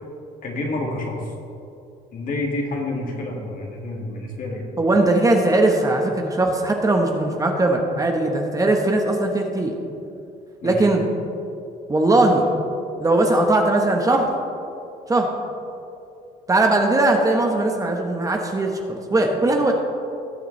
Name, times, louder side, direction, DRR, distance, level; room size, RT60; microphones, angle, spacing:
voice 1, 0.4-1.3 2.1-4.7 10.6-10.9, left 2 dB, 55° left, -1 dB, 2.1 m, -28 dB
voice 2, 4.8-9.7 10.6-11.0 11.9-12.5 13.0-14.3 15.1-15.3 16.5-19.7, right 2 dB, 20° right, 2 dB, 1.1 m, -19 dB
18.0 x 6.8 x 3.3 m, 2.6 s
cardioid pair, 110°, 17 cm